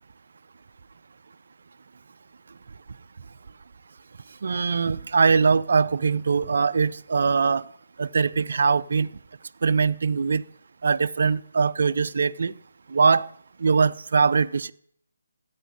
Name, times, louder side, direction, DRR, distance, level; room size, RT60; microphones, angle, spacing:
voice 1, 4.4-7.7 8.0-9.1 9.6-10.4 10.8-12.5 12.9-13.3 13.6-14.7, right 5 dB, 55° right, 0.6 m, -22 dB
14.0 x 9.3 x 10.0 m
figure-of-eight pair, 145°, 0 cm